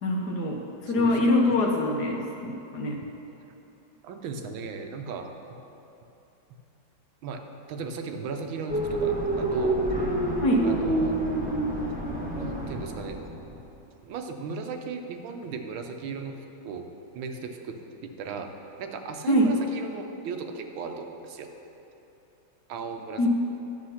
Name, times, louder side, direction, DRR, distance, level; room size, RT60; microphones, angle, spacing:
voice 1, 0.0-3.0 10.4-10.7 19.3-19.5 23.2-23.3, left 1 dB, 60° left, 0 dB, 1.5 m, -24 dB
voice 2, 4.0-5.3 7.2-7.4 7.7-9.8 10.6-11.2 12.4-13.2 14.0-16.3 16.6-16.8 17.1-17.7 18.2-18.5 18.8-21.5 22.7-23.2, right 5 dB, 80° right, 5 dB, 1.6 m, -36 dB
sound 1, 8.7-13.6, right 2 dB, 5° right, 0.8 m, -28 dB
11.0 x 7.3 x 5.7 m, 2.9 s
omnidirectional pair, 2.2 m